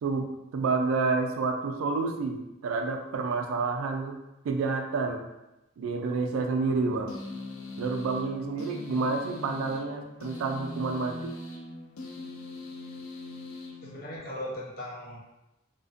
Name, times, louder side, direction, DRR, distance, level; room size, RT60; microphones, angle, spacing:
voice 1, 0.0-4.2 4.4-5.3 5.8-7.2 7.8-11.4, right 4 dB, 85° right, 5 dB, 0.3 m, -29 dB
sound 1, 7.1-14.5, left 2 dB, 90° left, 0.4 m, -41 dB
voice 2, 13.8-15.2, left 1 dB, 50° left, -4 dB, 0.7 m, -38 dB
2.4 x 2.2 x 2.4 m, 0.94 s
head